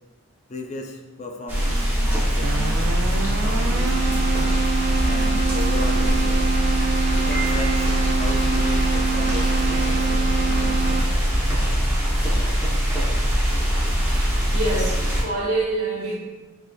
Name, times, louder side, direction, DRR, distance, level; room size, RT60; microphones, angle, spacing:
voice 1, 0.5-2.9 3.1-4.4 5.0-6.7 7.1-11.2, left 2 dB, 30° left, 2 dB, 0.4 m, -36 dB
sound 1, 1.5-15.2, equal, 10° right, 0.7 m, -22 dB
Keyboard (musical), 2.4-11.4, right 6 dB, 55° right, 0.3 m, -27 dB
Piano, 7.3-8.3, right 5 dB, 50° left, 0.8 m, -34 dB
voice 2, 14.3-16.1, right 2 dB, 80° right, -4 dB, 1.2 m, -26 dB
6.1 x 2.7 x 2.2 m, 1.2 s
head